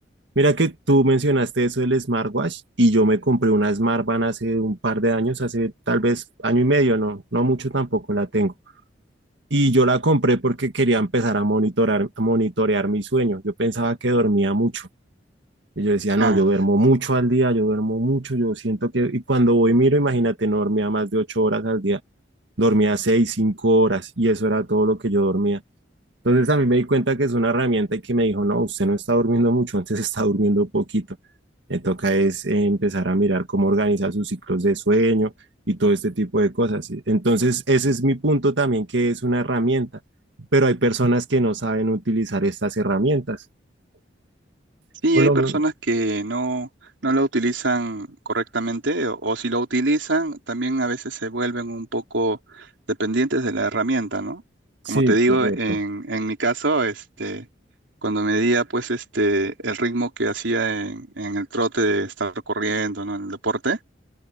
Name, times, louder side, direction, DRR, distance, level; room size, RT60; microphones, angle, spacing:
voice 1, 0.4-8.5 9.5-14.9 15.8-22.0 22.6-25.6 26.2-31.1 31.7-35.3 35.7-39.9 40.5-43.4 45.1-45.6 54.9-55.6, right 1 dB, 70° right, 1.9 m, -21 dB
voice 2, 45.0-46.7 47.0-52.7 53.0-54.4 54.9-57.5 58.0-63.8, right 2 dB, 90° right, 3.6 m, -24 dB
head